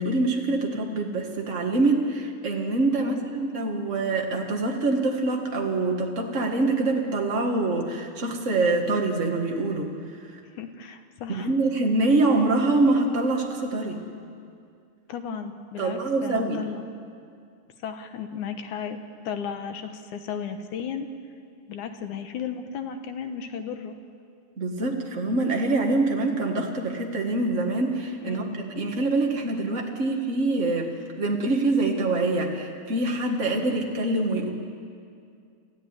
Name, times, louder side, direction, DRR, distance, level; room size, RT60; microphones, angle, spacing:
voice 1, 0.0-9.9 10.2-10.4 11.3-14.0 15.8-16.6 24.6-30.9 31.2-34.5, right 2 dB, 85° right, 1 dB, 0.6 m, -25 dB
voice 2, 2.9-3.3 10.6-11.5 15.1-16.8 17.8-19.0 19.2-21.1 21.7-23.9 28.2-28.6, left 7 dB, 65° left, 7 dB, 2.1 m, -34 dB
28.0 x 14.5 x 9.9 m, 2.3 s
omnidirectional pair, 4.5 m